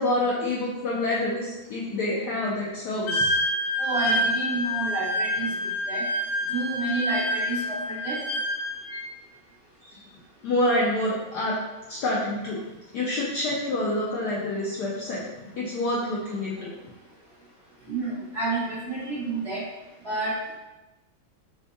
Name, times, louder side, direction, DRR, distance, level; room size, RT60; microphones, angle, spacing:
voice 1, 0.0-3.3 9.8-10.0 10.4-11.6 11.9-12.6 12.9-15.2 15.5-16.7, left 1 dB, 75° left, -5 dB, 1.0 m, -27 dB
Wind instrument woodwind instrument, 3.1-9.1, equal, 90° left, 1.5 m, -27 dB
voice 2, 3.8-5.5 5.9-6.0 6.5-8.2 17.9-19.6 20.0-20.6, right 2 dB, 35° right, -11 dB, 1.4 m, -29 dB
4.3 x 2.3 x 2.6 m, 1.0 s
omnidirectional pair, 2.2 m